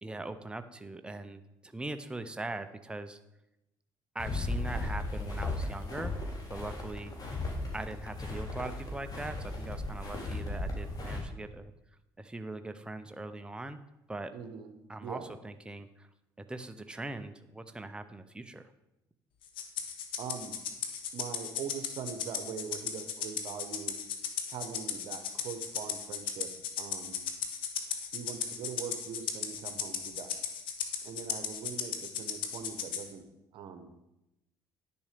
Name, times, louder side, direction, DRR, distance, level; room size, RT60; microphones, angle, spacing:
voice 1, 0.0-3.2 4.1-6.1 6.5-7.1 7.7-11.7 12.2-13.8 14.1-14.3 14.9-16.1 16.4-18.7, right 2 dB, 10° right, 9 dB, 0.7 m, -41 dB
sound 1, 4.2-11.2, left 2 dB, 45° left, 3.3 m, -36 dB
voice 2, 14.3-14.7 15.0-15.3 20.2-20.6 21.1-24.0 24.5-26.5 26.8-27.2 28.1-30.3 31.0-33.3 33.5-33.9, right 7 dB, 70° right, 7 dB, 1.0 m, -42 dB
Rattle (instrument), 19.6-33.1, left 8 dB, 75° left, 1.3 m, -36 dB
10.5 x 7.0 x 5.1 m, 0.90 s
supercardioid pair, 80°, 9 cm